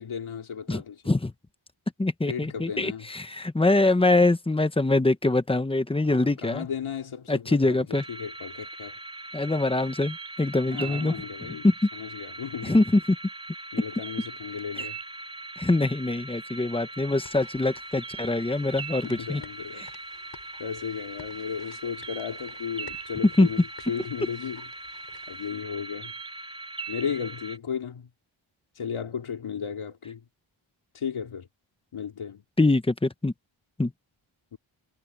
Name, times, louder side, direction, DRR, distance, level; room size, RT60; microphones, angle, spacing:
voice 1, 0.0-1.0 2.3-3.1 6.0-9.0 10.6-12.8 13.7-15.0 19.0-19.9 20.6-24.7 25.3-26.1 26.9-28.1 28.7-30.2 30.9-31.5 31.9-32.4 34.5-34.6, left 7 dB, 85° left, 3.1 m, -35 dB
voice 2, 0.7-1.3 2.0-6.7 7.3-8.0 9.3-11.1 11.6-11.7 12.6-13.0 15.6-19.4 23.4-23.5 32.6-33.3 33.8-33.9, left 2 dB, 10° left, 0.9 m, -23 dB
sound 1, 7.9-27.6, right 3 dB, 10° right, 3.5 m, -40 dB
sound 2, 17.1-25.5, left 5 dB, 50° left, 6.3 m, -53 dB
wide cardioid pair, 175°, 48 cm